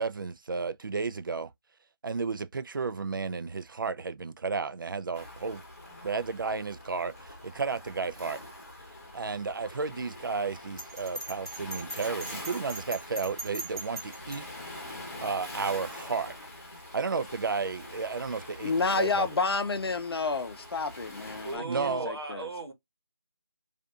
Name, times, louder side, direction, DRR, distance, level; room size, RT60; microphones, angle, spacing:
voice 1, 0.0-1.5 2.0-5.6 6.0-8.4 9.1-14.5 15.2-16.4 16.9-19.3 21.5-22.1, right 4 dB, 60° right, 0.4 m, -33 dB
Waves surf, 5.1-21.6, left 1 dB, 35° left, 0.9 m, -44 dB
Bell, 10.8-14.4, right 2 dB, 10° right, 0.8 m, -39 dB
voice 2, 18.6-22.4, left 3 dB, 80° left, 0.5 m, -30 dB
voice 3, 21.4-22.7, right 3 dB, 85° right, 1.0 m, -36 dB
2.6 x 2.5 x 2.3 m
figure-of-eight pair, 175°, 13 cm